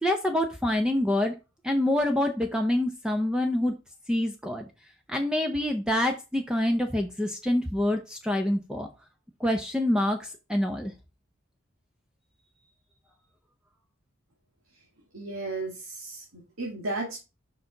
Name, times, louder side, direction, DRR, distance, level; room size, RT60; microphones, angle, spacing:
voice 1, 0.0-1.4 1.6-3.7 4.1-4.6 5.1-8.9 9.4-10.9, left 1 dB, 5° right, 4 dB, 0.6 m, -26 dB
voice 2, 15.1-17.2, right 2 dB, 85° right, -1 dB, 1.9 m, -34 dB
6.7 x 5.3 x 3.9 m, 0.28 s
head